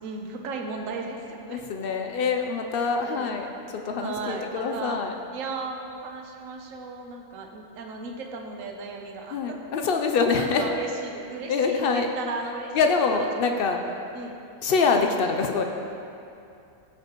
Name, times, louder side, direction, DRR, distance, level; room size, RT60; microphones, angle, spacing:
voice 1, 0.0-1.6 2.9-3.3 4.0-5.0 5.3-9.7 10.4-12.8 13.1-13.3 13.9-14.4, right 4 dB, 65° right, 2 dB, 1.1 m, -35 dB
voice 2, 1.5-5.2 9.3-10.7 11.5-12.1 12.7-13.8 14.6-15.6, left 4 dB, 75° left, 4 dB, 0.5 m, -25 dB
15.5 x 5.6 x 3.0 m, 2.6 s
omnidirectional pair, 1.6 m